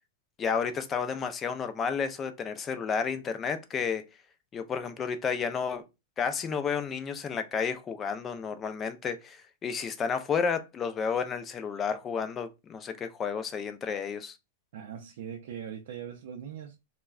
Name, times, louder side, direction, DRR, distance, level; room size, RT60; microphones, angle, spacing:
voice 1, 0.4-4.0 4.5-5.8 6.2-14.4, left 6 dB, 20° left, 0.3 m, -31 dB
voice 2, 14.7-16.8, right 8 dB, 65° right, 0.4 m, -40 dB
2.2 x 2.1 x 3.4 m
supercardioid pair, 155°, 0 cm